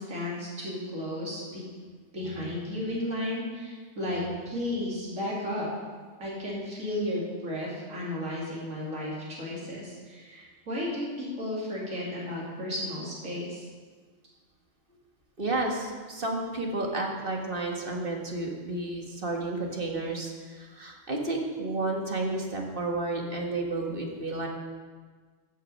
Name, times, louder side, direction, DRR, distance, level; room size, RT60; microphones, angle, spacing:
voice 1, 0.0-1.6 2.1-5.7 6.2-13.7, left 1 dB, 80° right, -5 dB, 3.1 m, -33 dB
voice 2, 15.4-24.5, right 2 dB, 45° right, 0 dB, 1.7 m, -31 dB
15.0 x 6.3 x 5.5 m, 1.5 s
omnidirectional pair, 1.4 m